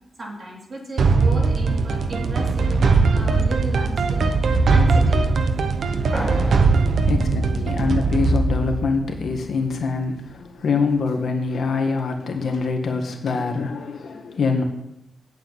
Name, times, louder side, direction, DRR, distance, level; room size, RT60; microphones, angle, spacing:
voice 1, 0.2-4.3 4.7-5.3 6.1-6.9, right 1 dB, 40° right, -2 dB, 3.8 m, -33 dB
sound 1, 1.0-9.8, right 4 dB, 60° right, 1.0 m, -20 dB
voice 2, 7.0-14.6, left 4 dB, 60° left, 3 dB, 1.9 m, -24 dB
8.5 x 8.0 x 9.1 m, 0.84 s
wide cardioid pair, 130°, 0 cm